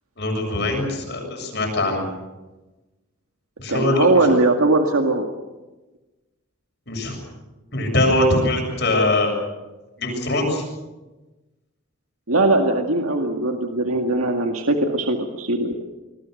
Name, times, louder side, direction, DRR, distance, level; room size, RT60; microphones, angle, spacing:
voice 1, 0.2-2.0 3.6-4.2 6.9-7.2 7.7-9.3 10.0-10.6, left 1 dB, 50° left, 1 dB, 7.3 m, -22 dB
voice 2, 3.7-5.3 12.3-15.8, right 2 dB, 85° right, 3 dB, 2.0 m, -20 dB
27.0 x 21.5 x 6.6 m, 1.1 s
head